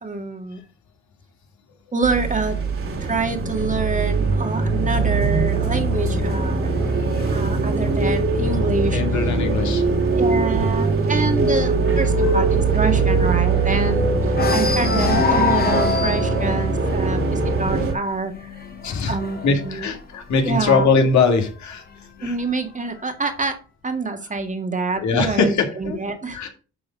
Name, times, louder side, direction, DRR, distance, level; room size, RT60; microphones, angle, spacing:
voice 1, 0.0-0.6 1.9-2.6 3.0-6.7 7.3-9.0 10.2-18.5 19.1-19.9 20.4-20.9 22.2-23.6 23.8-26.5, right 3 dB, 25° right, 6 dB, 1.8 m, -26 dB
sound 1, 2.0-17.9, right 3 dB, 45° right, 2.5 m, -21 dB
sound 2, 5.5-9.2 9.6-9.9 10.2-10.3 10.7-13.9 14.3-20.8 21.7-22.7, left 4 dB, 30° left, 2.0 m, -28 dB
voice 2, 8.9-9.8 18.8-19.2 19.4-21.8 22.2-22.4 25.0-26.0 26.3-26.5, left 4 dB, 70° left, 4 dB, 2.3 m, -21 dB
11.5 x 3.8 x 5.2 m, 0.34 s
cardioid pair, 90°, 30 cm